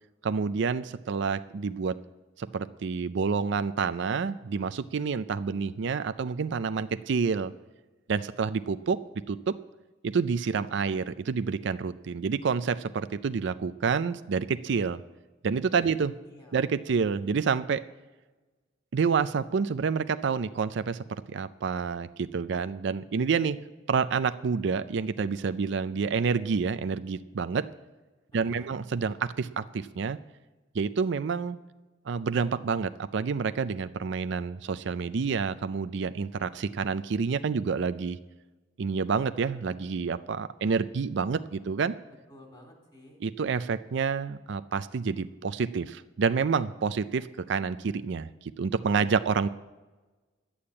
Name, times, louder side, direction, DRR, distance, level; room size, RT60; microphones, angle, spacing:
voice 1, 0.2-2.0 2.4-7.5 8.1-9.0 9.3-9.6 10.0-15.0 15.4-16.1 16.5-17.8 18.9-23.6 23.9-27.7 28.3-30.2 30.7-31.6 32.1-38.2 38.8-41.9 43.2-49.5, right 5 dB, 65° right, 12 dB, 0.4 m, -28 dB
voice 2, 16.2-16.6 28.3-28.8 42.3-43.2, equal, 25° left, -1 dB, 3.3 m, -52 dB
11.5 x 8.6 x 8.6 m, 1.2 s
head